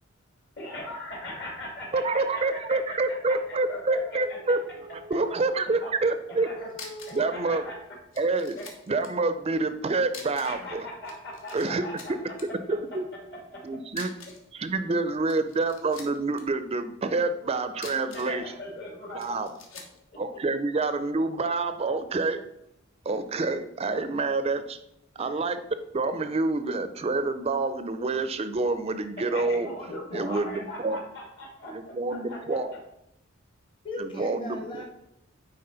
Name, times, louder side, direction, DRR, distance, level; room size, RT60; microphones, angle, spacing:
voice 1, 0.6-4.6 5.1-5.2 5.6-5.9 6.3-6.7 7.1-7.8 8.6-8.7 10.4-12.3 12.9-13.0 13.3-13.8 18.1-19.3 20.3-20.4 29.2-32.8, left 1 dB, 60° left, -1 dB, 2.4 m, -40 dB
voice 2, 1.9-4.6 5.1-6.5 7.1-7.6 8.2-8.6 8.9-10.9 11.5-11.8 12.7-13.0 13.6-14.1 14.5-18.4 19.1-19.5 20.2-22.4 23.1-24.8 25.2-25.6 25.9-29.7 30.1-31.0 31.7-32.7 34.0-34.8, right 3 dB, 30° right, 10 dB, 0.4 m, -27 dB
voice 3, 3.9-5.5 6.4-7.3 17.4-17.5 19.2-19.4 25.2-25.4 33.8-34.8, left 2 dB, 25° left, 1 dB, 0.8 m, -41 dB
sound 1, 6.4-6.5 6.7-7.3 7.5-7.6 8.1-9.1 10.1-10.7 10.9-11.7 12.0-12.4 13.9-14.5 15.1-16.4 17.7-18.4 19.2-20.0, left 4 dB, 75° left, 1.3 m, -44 dB
9.6 x 4.1 x 3.9 m, 0.81 s
head